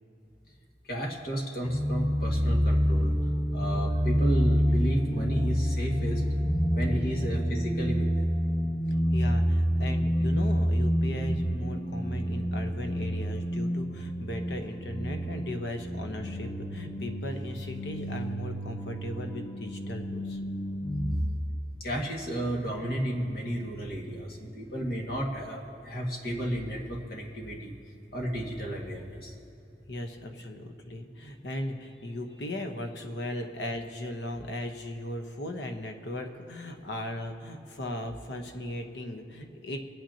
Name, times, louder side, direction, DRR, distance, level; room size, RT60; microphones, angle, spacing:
voice 1, 0.9-3.1 3.5-6.3 6.7-8.3 21.8-27.7 28.1-29.3, right 1 dB, 55° left, -1 dB, 2.0 m, -33 dB
sound 1, 1.6-21.2, equal, 25° left, 1.6 m, -28 dB
voice 2, 8.9-20.4 29.9-39.8, left 1 dB, 75° left, 5 dB, 1.1 m, -37 dB
26.0 x 9.0 x 2.9 m, 2.9 s
head